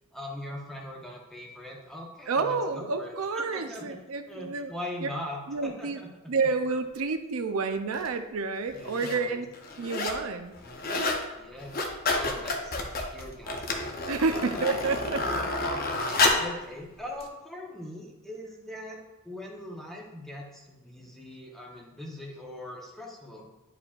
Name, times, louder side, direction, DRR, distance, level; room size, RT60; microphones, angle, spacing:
voice 1, 0.1-4.0 4.3-6.1 8.7-9.4 11.4-12.7 13.1-13.9 14.3-14.6 16.1-23.5, left 1 dB, ahead, -1 dB, 0.9 m, -41 dB
voice 2, 2.3-4.7 5.0-5.1 5.5-6.0 6.3-9.5 9.8-10.5 14.1-15.3, right 4 dB, 85° right, 7 dB, 0.5 m, -29 dB
sound 1, 7.9-8.1 8.8-9.2 9.5-10.2 10.5-11.2 11.6-16.5 17.2-17.3, left 2 dB, 45° left, 0.7 m, -29 dB
10.0 x 4.8 x 2.4 m, 1.0 s
head